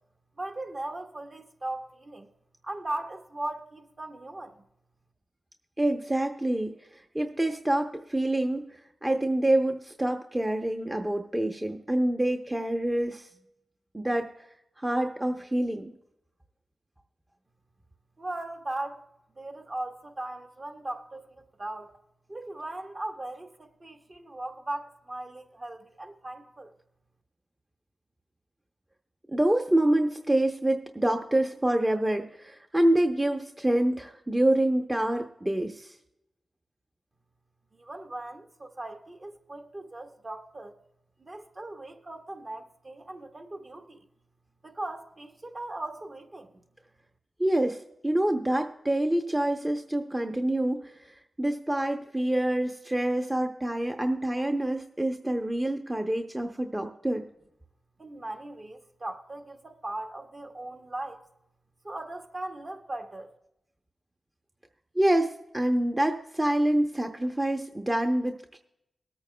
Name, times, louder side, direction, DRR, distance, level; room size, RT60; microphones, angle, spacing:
voice 1, 0.4-2.3 2.6-4.6 18.2-19.0 19.4-22.0 22.3-26.7 37.7-40.8 41.2-44.0 44.6-46.6 58.0-61.2 61.8-63.3, right 2 dB, 40° right, 1.2 m, -38 dB
voice 2, 5.8-13.3 13.9-14.3 14.8-15.9 29.3-35.9 47.4-51.0 51.4-57.2 65.0-68.6, right 1 dB, 20° right, 0.8 m, -26 dB
22.0 x 8.8 x 2.2 m
cardioid pair, 55°, 0 cm